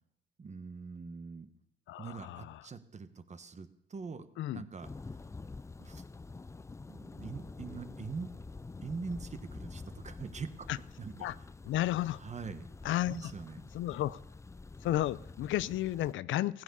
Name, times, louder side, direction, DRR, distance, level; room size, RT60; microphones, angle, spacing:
voice 1, 0.4-1.5 2.0-4.3 4.5-5.2 5.8-6.0 6.9-8.3 8.8-11.3 12.2-12.7 13.1-13.7, right 5 dB, 35° right, 1.3 m, -43 dB
voice 2, 1.9-2.6 4.4-4.6 10.7-10.8 11.2-11.3 11.6-12.2 12.8-13.3 13.7-14.2 14.8-16.6, left 14 dB, 80° left, 0.5 m, -32 dB
Thunder, 4.8-16.1, left 3 dB, 15° left, 0.4 m, -47 dB
15.5 x 9.7 x 6.9 m
cardioid pair, 90°, 20 cm